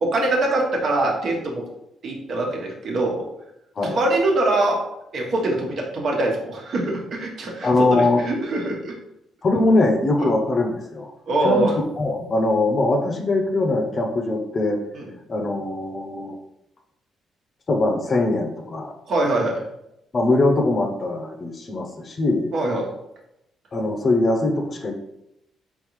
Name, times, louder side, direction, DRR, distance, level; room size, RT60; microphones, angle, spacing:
voice 1, 0.0-1.6 2.0-3.3 3.8-4.8 5.1-8.9 10.2-10.3 11.3-11.7 14.9-15.1 19.1-19.6 22.5-22.9, right 2 dB, 60° right, 0 dB, 1.1 m, -23 dB
voice 2, 7.6-8.2 9.4-11.1 11.4-11.7 12.0-14.8 15.3-16.4 17.7-18.9 20.1-22.5 23.7-24.9, left 2 dB, 40° left, 4 dB, 0.7 m, -21 dB
3.8 x 3.7 x 3.1 m, 0.84 s
cardioid pair, 90°, 0 cm